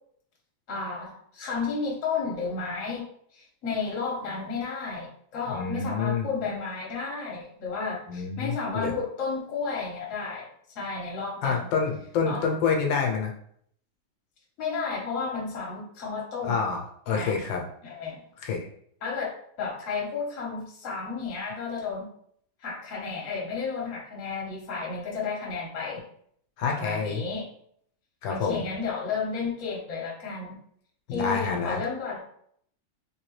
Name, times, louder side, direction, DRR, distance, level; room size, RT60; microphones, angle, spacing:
voice 1, 0.7-3.1 3.3-10.5 10.7-11.7 12.3-12.4 14.6-16.6 17.1-17.4 17.8-18.2 19.0-19.3 19.6-22.1 22.6-26.0 26.7-27.5 28.3-30.6 31.1-32.2, left 4 dB, 45° left, -3 dB, 1.3 m, -32 dB
voice 2, 5.5-6.3 8.1-8.9 11.4-13.3 16.4-17.6 18.4-18.6 26.6-27.2 28.2-28.6 31.1-31.8, left 5 dB, 85° left, 1 dB, 1.4 m, -27 dB
3.3 x 3.3 x 3.1 m, 0.66 s
omnidirectional pair, 2.0 m